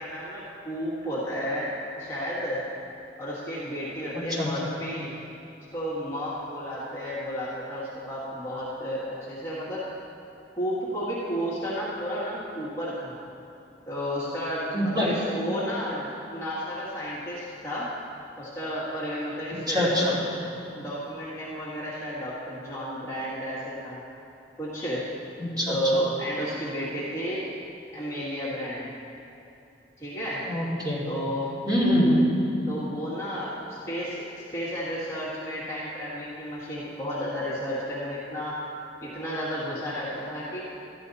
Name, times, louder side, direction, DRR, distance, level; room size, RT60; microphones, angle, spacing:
voice 1, 0.0-2.6 3.2-5.1 5.7-9.9 10.5-13.2 13.9-17.9 18.4-20.2 20.7-24.0 24.6-25.0 25.7-27.5 27.9-28.9 30.0-30.4 31.1-31.6 32.7-38.6 39.0-40.6, equal, 15° left, -9 dB, 1.8 m, -32 dB
voice 2, 14.7-15.1 19.7-20.2 25.4-25.7 30.4-31.0 31.7-32.2, equal, 20° right, -7 dB, 2.9 m, -24 dB
14.0 x 10.5 x 4.1 m, 2.7 s
head